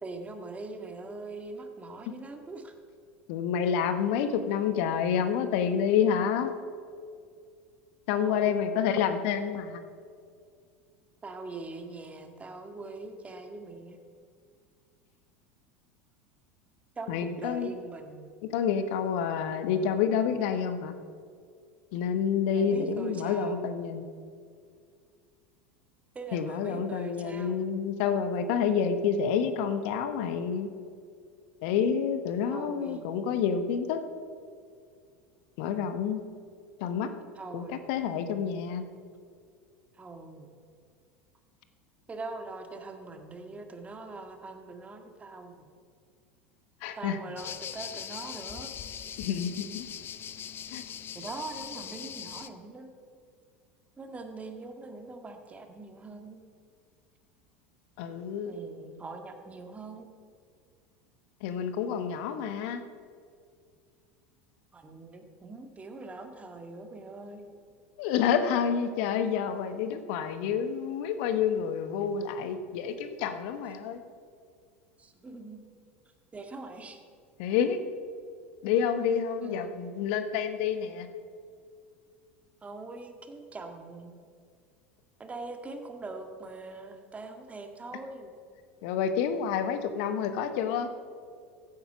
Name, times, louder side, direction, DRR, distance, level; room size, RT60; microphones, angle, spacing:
voice 1, 0.0-2.7 8.2-8.8 11.2-14.0 17.0-18.3 22.6-23.7 26.2-27.7 32.5-33.1 37.4-37.8 39.9-40.5 42.1-45.7 46.9-48.7 51.1-52.9 54.0-56.4 58.5-60.1 64.7-67.5 75.0-75.6 76.3-77.0 79.4-79.9 82.6-84.2 85.2-88.3, right 3 dB, 20° right, 5 dB, 1.8 m, -42 dB
voice 2, 3.3-6.5 8.1-9.8 17.1-17.7 18.5-20.9 21.9-24.1 26.3-30.7 31.6-34.0 35.6-36.2 36.8-37.1 37.5-38.8 46.8-47.2 49.2-49.9 50.7-50.8 58.0-58.6 61.4-62.8 68.0-74.0 77.4-77.8 78.6-81.1 88.8-90.9, left 7 dB, 60° left, 9 dB, 1.1 m, -28 dB
sound 1, 47.4-52.5, left 9 dB, 35° left, 0.7 m, -41 dB
15.5 x 8.8 x 5.7 m, 2.2 s
hypercardioid pair, 80°, 7 cm